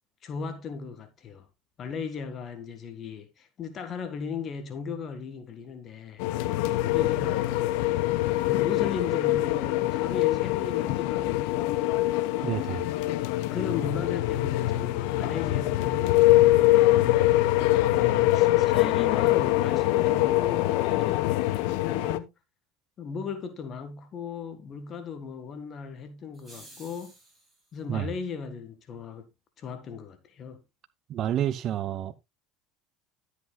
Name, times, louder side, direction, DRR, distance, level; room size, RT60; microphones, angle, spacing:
voice 1, 0.2-1.5 1.8-6.2 6.9-7.5 8.4-11.9 13.5-17.5 17.8-22.3 23.0-27.1 27.7-29.3 29.6-30.6, left 6 dB, 40° left, 1.7 m, -37 dB
sound 1, 6.2-22.2, left 16 dB, 75° left, 0.8 m, -24 dB
voice 2, 12.4-12.9 27.9-28.1 31.1-32.1, right 11 dB, 45° right, 0.8 m, -29 dB
sound 2, 26.3-27.7, right 1 dB, 5° right, 7.5 m, -51 dB
12.5 x 8.2 x 2.4 m
supercardioid pair, 105°, 0 cm